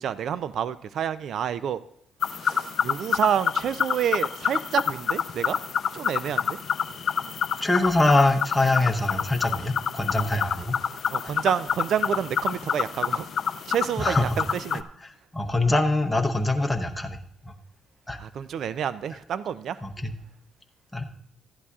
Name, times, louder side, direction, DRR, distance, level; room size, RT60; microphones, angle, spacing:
voice 1, 0.0-1.8 2.4-5.6 5.9-6.6 11.1-13.2 13.7-14.8 18.2-19.8, right 9 dB, 65° right, 15 dB, 0.4 m, -28 dB
sound 1, 2.2-14.8, left 7 dB, 60° left, 0.5 m, -28 dB
voice 2, 7.6-10.8 11.2-11.3 14.0-14.4 15.0-17.5 18.1-18.2 19.8-20.1 20.9-21.0, left 2 dB, 10° left, 2 dB, 0.8 m, -24 dB
14.5 x 11.0 x 2.4 m, 0.69 s
cardioid pair, 90°, 0 cm